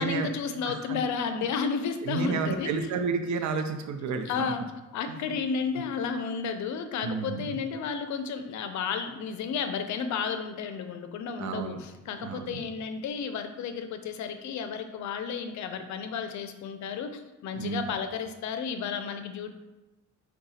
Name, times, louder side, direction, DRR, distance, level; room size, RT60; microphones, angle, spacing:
voice 1, 0.0-2.7 4.3-4.6 4.9-19.5, left 6 dB, 70° left, 8 dB, 0.5 m, -32 dB
voice 2, 0.7-1.0 2.0-4.5 5.2-5.3 7.0-7.6 11.4-11.8 12.2-12.6 17.5-17.9, right 5 dB, 70° right, 7 dB, 0.6 m, -31 dB
4.7 x 2.3 x 4.1 m, 1.1 s
cardioid pair, 90°, 30 cm